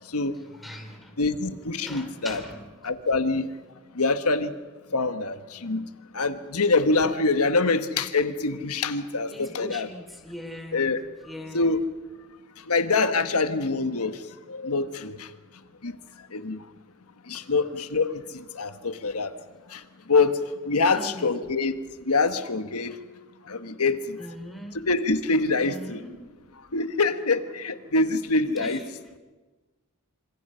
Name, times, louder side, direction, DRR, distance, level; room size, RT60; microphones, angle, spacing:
voice 1, 0.5-1.1 1.8-2.7 9.3-10.9 11.2-11.8 17.3-17.5 20.9-21.4 24.2-24.8 25.6-26.2 28.6-28.8, equal, ahead, 4 dB, 3.3 m, -40 dB
voice 2, 1.2-2.4 2.8-3.5 3.9-4.5 4.9-5.8 6.1-9.9 10.7-11.0 11.5-11.8 12.7-14.2 14.5-15.3 15.8-15.9 16.3-16.6 17.3-18.2 18.5-19.3 19.7-19.8 20.1-20.4 20.6-21.8 22.0-22.9 23.5-24.2 24.9-26.0 26.7-28.8, left 3 dB, 80° left, 9 dB, 1.4 m, -25 dB
27.5 x 26.0 x 5.7 m, 1.3 s
head